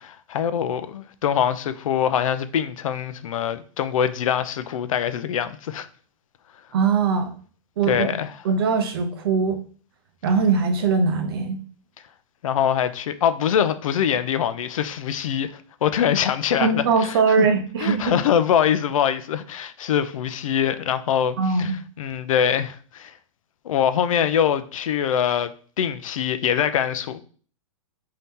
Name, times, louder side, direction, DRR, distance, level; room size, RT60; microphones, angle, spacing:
voice 1, 0.0-5.9 7.9-8.3 12.4-17.5 17.8-23.1 23.6-27.2, left 9 dB, 70° left, 0.4 m, -23 dB
voice 2, 6.7-7.3 7.8-8.1 8.4-9.6 10.2-11.6 16.6-18.1 21.4-21.8, right 5 dB, 45° right, 0.6 m, -21 dB
4.1 x 2.8 x 3.6 m
hypercardioid pair, 175°, 18 cm